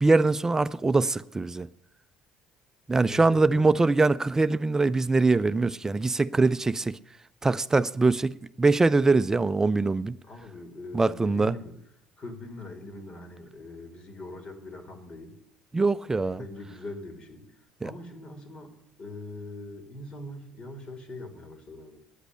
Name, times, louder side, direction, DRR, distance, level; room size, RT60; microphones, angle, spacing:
voice 1, 0.0-1.7 2.9-7.0 7.4-10.2 10.9-11.5 15.7-16.4 17.8-17.9, right 3 dB, 20° right, 0.5 m, -23 dB
voice 2, 3.1-3.8 10.2-11.8 12.2-15.4 16.4-17.4 17.8-22.0, left 2 dB, 40° left, 2.9 m, -42 dB
10.0 x 8.2 x 9.7 m
hypercardioid pair, 55°, 3 cm